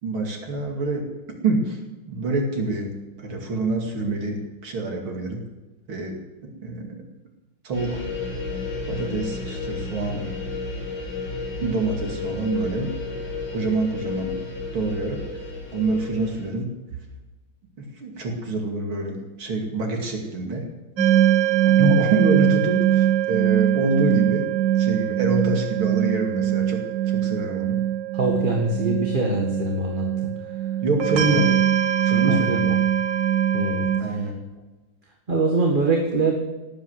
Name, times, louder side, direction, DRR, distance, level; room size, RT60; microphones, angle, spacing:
voice 1, 0.0-1.0 1.4-1.8 2.1-2.9 3.2-5.4 5.9-6.2 6.4-7.0 7.6-8.0 8.9-10.2 11.6-12.9 13.5-14.3 14.7-15.2 15.7-16.7 17.8-20.7 21.7-24.5 24.7-26.8 27.1-27.8 30.8-31.5 32.0-32.7 34.0-34.4, right 2 dB, 80° right, 2 dB, 3.3 m, -26 dB
sound 1, 7.7-16.5, left 3 dB, 60° left, 7.2 m, -32 dB
sound 2, 21.0-34.0, right 11 dB, 60° right, 2.1 m, -22 dB
voice 2, 28.1-30.3 31.1-31.4 32.3-32.6 33.5-34.3 35.3-36.3, right 2 dB, 25° right, 1 dB, 1.9 m, -24 dB
18.5 x 9.1 x 7.7 m, 1.1 s
omnidirectional pair, 2.3 m